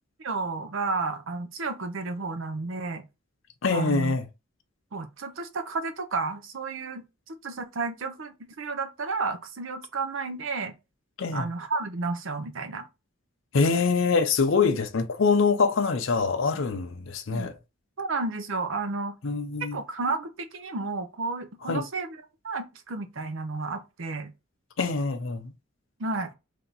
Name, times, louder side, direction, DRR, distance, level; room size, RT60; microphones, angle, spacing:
voice 1, 0.2-3.0 3.7-4.2 4.9-10.7 11.3-12.9 17.3-17.5 18.0-19.2 19.7-24.3 26.0-26.3, right 3 dB, 70° right, 0.6 m, -32 dB
voice 2, 3.6-4.3 11.2-11.5 13.5-17.5 19.2-19.8 21.6-21.8 24.8-25.5, left 4 dB, 65° left, 0.6 m, -24 dB
3.4 x 2.7 x 3.9 m
head